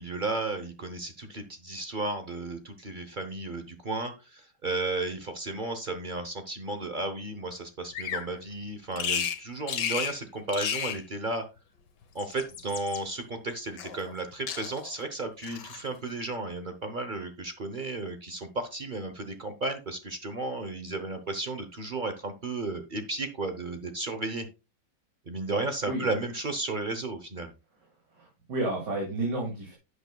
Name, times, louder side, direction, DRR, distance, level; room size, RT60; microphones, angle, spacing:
voice 1, 0.0-11.4 12.1-24.5 25.3-27.5, right 2 dB, 45° right, 7 dB, 0.6 m, -34 dB
Bird vocalization bird call bird song, 7.9-8.3 9.0-9.4 9.7-10.2 10.5-11.0 12.0-13.0 13.8-14.2 14.5-14.9 15.4-15.8, left 8 dB, 65° left, 1.6 m, -33 dB
voice 2, 28.2-29.7, right 2 dB, 60° right, -1 dB, 3.0 m, -31 dB
11.5 x 8.1 x 2.3 m, 0.28 s
omnidirectional pair, 2.1 m